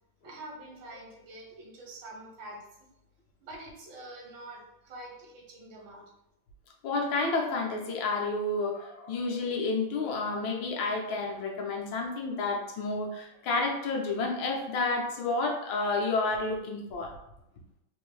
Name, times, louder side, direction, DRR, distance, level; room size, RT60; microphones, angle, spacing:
voice 1, 0.2-2.7 3.4-6.1, right 1 dB, 85° right, -1 dB, 1.7 m, -46 dB
voice 2, 6.8-17.1, left 3 dB, 75° left, 1 dB, 1.4 m, -30 dB
4.0 x 2.6 x 3.1 m, 0.84 s
omnidirectional pair, 2.1 m